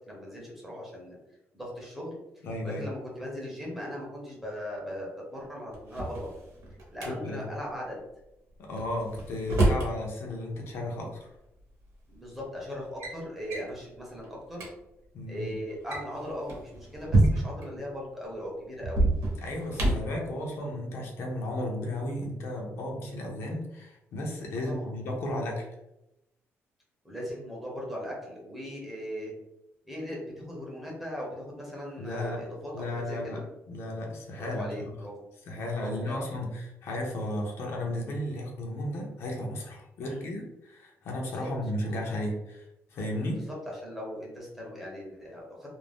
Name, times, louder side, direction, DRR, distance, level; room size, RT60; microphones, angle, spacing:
voice 1, 0.1-1.2 1.5-2.2 2.6-6.3 6.9-8.0 12.1-14.7 15.3-19.1 24.6-24.9 27.0-29.3 29.8-33.5 34.4-35.2 35.8-36.3 40.0-40.2 41.2-41.5 41.8-42.0 43.5-45.7, equal, 5° right, -4 dB, 0.7 m, -39 dB
voice 2, 2.4-2.8 7.1-7.5 8.6-11.3 15.1-15.6 19.4-25.7 32.0-32.4 32.7-33.4 33.7-34.7 35.5-42.6 42.9-43.5, left 1 dB, 60° left, 0 dB, 0.6 m, -34 dB
Drawer open or close, 5.7-7.1 8.8-9.9 11.2-11.3 12.1-12.4 12.7-13.2 13.5-13.7 14.2-14.3 14.5-14.7 15.7-17.7 18.8-20.2, right 2 dB, 70° right, 0.9 m, -27 dB
2.5 x 2.0 x 3.3 m, 0.89 s
cardioid pair, 180°, 5 cm